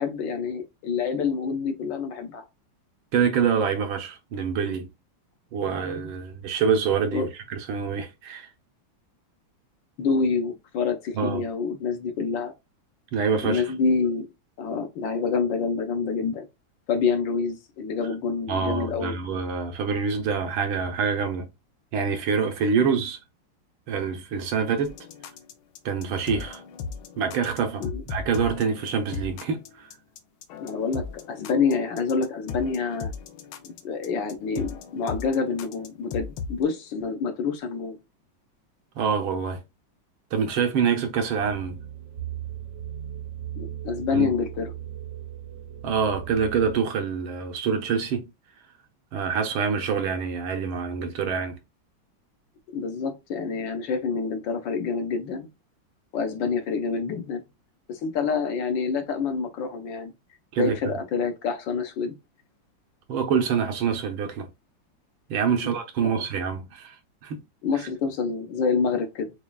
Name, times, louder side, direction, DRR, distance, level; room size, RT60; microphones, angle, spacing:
voice 1, 0.0-2.4 7.1-7.3 10.0-12.5 13.4-14.3 14.6-16.5 16.9-19.2 27.8-28.0 30.6-33.1 33.6-38.0 43.6-44.7 52.7-55.5 56.1-57.4 57.9-60.1 60.6-62.1 65.5-65.7 66.0-66.1 67.6-69.3, left 5 dB, 70° left, 1.5 m, -27 dB
voice 2, 3.1-4.9 5.5-8.5 11.1-11.4 13.1-13.6 18.5-21.5 21.9-23.2 23.9-25.0 25.9-26.6 27.2-29.9 39.0-39.6 40.3-41.8 44.1-44.3 45.8-48.2 49.1-51.6 60.5-60.8 63.1-64.5 65.3-67.0 67.2-67.4, right 6 dB, 80° right, 1.7 m, -26 dB
sound 1, 24.8-36.6, left 5 dB, 85° left, 1.5 m, -37 dB
sound 2, 41.4-46.8, right 10 dB, 55° right, 0.9 m, -37 dB
7.1 x 2.4 x 2.2 m
omnidirectional pair, 2.2 m